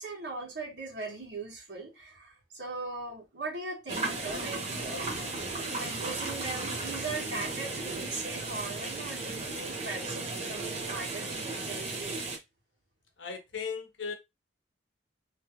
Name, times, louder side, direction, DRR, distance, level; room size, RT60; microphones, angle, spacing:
voice 1, 0.0-11.8, right 3 dB, 65° right, 1.5 m, -40 dB
sound 1, 3.9-12.4, right 3 dB, 35° right, 0.8 m, -35 dB
voice 2, 13.2-14.1, left 5 dB, 80° left, 0.8 m, -36 dB
3.1 x 2.3 x 3.0 m
head